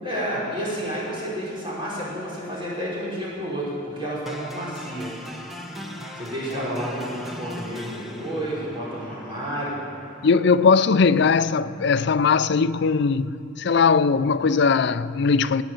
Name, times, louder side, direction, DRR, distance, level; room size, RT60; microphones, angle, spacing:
voice 1, 0.0-5.1 6.1-9.8, equal, 25° right, 5.2 m, -30 dB
sound 1, 4.3-12.3, equal, ahead, 1.2 m, -40 dB
voice 2, 10.2-15.6, left 5 dB, 60° left, 0.4 m, -19 dB
20.5 x 8.8 x 7.8 m
head